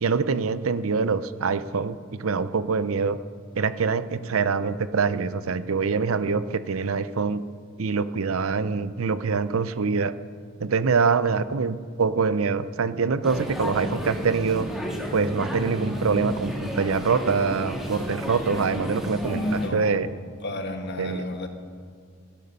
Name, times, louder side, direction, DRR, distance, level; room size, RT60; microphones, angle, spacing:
voice 1, 0.0-3.2 3.6-7.4 7.8-10.1 10.6-14.7 15.1-20.1 21.0-21.3, right 5 dB, 85° right, 14 dB, 0.6 m, -25 dB
sound 1, 13.2-19.7, equal, ahead, 1.9 m, -32 dB
voice 2, 19.3-20.0 20.4-21.5, left 1 dB, 55° left, 6 dB, 1.4 m, -31 dB
17.0 x 12.0 x 5.5 m, 2.2 s
head